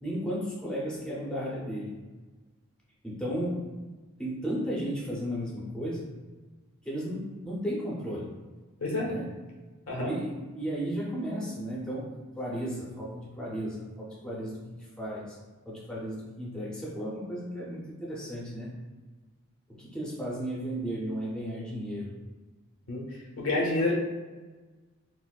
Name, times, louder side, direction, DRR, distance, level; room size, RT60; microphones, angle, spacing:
voice 1, 0.0-1.9 3.0-3.7 4.2-6.1 6.8-8.3 9.0-9.3 10.0-12.1 12.4-15.4 15.7-18.7 19.7-22.1, equal, 5° left, -6 dB, 0.6 m, -34 dB
voice 2, 22.9-23.9, left 2 dB, 85° left, -1 dB, 0.9 m, -29 dB
4.0 x 2.0 x 2.3 m, 1.3 s
head